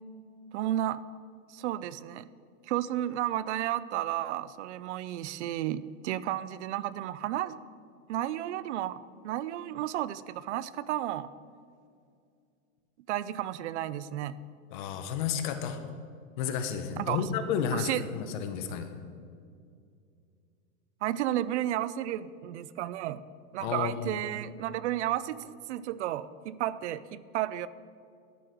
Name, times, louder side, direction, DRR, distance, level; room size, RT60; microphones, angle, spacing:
voice 1, 0.5-1.0 1.5-2.3 2.7-7.6 8.1-9.0 9.2-11.3 13.1-14.4 17.0-17.3 17.7-18.0 21.0-23.2 23.5-27.7, right 13 dB, 60° right, 17 dB, 0.5 m, -32 dB
voice 2, 14.7-15.8 16.4-18.9 23.6-24.2, left 7 dB, 40° left, 8 dB, 0.8 m, -32 dB
12.5 x 6.1 x 5.0 m, 2.3 s
supercardioid pair, 170°, 41 cm